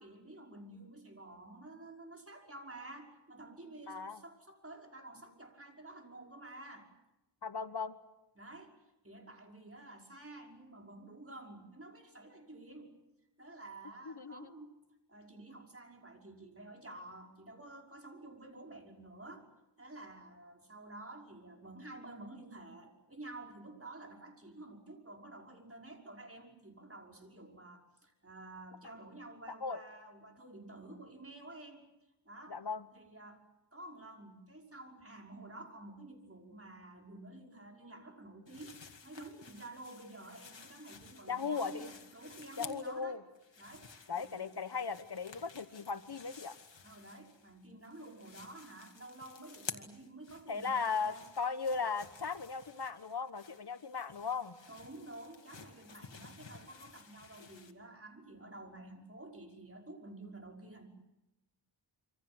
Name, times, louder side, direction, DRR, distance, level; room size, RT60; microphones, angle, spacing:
voice 1, 0.0-6.9 8.4-8.8 9.0-13.0 13.4-14.8 15.1-19.5 19.8-31.9 32.2-32.6 32.9-43.2 43.6-44.5 46.8-51.3 54.7-60.9, right 2 dB, 30° right, 2 dB, 5.6 m, -51 dB
voice 2, 3.9-4.2 7.4-7.9 14.1-14.5 29.6-29.8 32.5-32.8 41.3-41.9 42.6-43.2 44.1-46.5 50.5-54.5, left 5 dB, 65° left, 12 dB, 1.3 m, -37 dB
sound 1, 38.5-43.0 43.3-47.5 47.8-57.7, left 5 dB, 90° left, 2.0 m, -53 dB
27.0 x 25.5 x 7.9 m, 0.96 s
wide cardioid pair, 65°, 43 cm